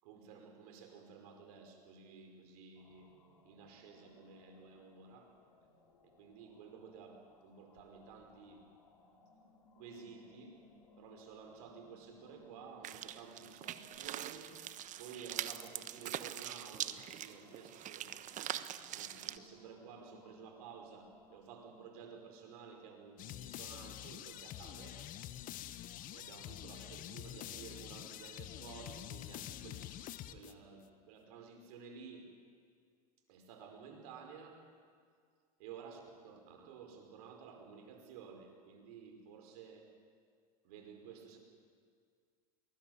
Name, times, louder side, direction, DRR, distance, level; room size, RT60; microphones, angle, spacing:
voice 1, 0.0-3.2 3.4-5.4 6.0-8.7 9.8-10.6 11.0-14.6 15.0-18.1 18.9-25.0 26.1-29.9 30.3-32.4 33.3-34.7 35.6-39.9 40.6-41.4, right 6 dB, 65° right, 4 dB, 5.2 m, -53 dB
sound 1, 2.8-21.4, left 3 dB, 85° left, 4.7 m, -65 dB
sound 2, 12.8-19.4, right 12 dB, 40° right, 1.1 m, -43 dB
sound 3, 23.2-30.8, left 13 dB, 45° left, 1.2 m, -47 dB
22.5 x 20.0 x 9.5 m, 2.1 s
hypercardioid pair, 95°, 20 cm